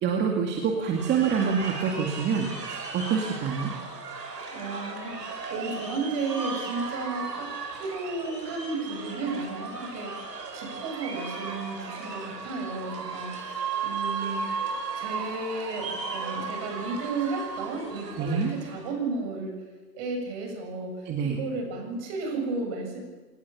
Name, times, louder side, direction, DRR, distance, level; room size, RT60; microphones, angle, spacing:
voice 1, 0.0-3.7 18.2-18.6 21.1-21.4, right 6 dB, 20° right, 1 dB, 2.1 m, -26 dB
sound 1, 0.9-18.9, right 4 dB, 85° right, 5.8 m, -36 dB
voice 2, 4.5-14.5 14.9-19.6 19.9-23.0, right 3 dB, 40° right, 4 dB, 7.5 m, -33 dB
27.0 x 18.5 x 7.1 m, 1.3 s
hypercardioid pair, 130°, 48 cm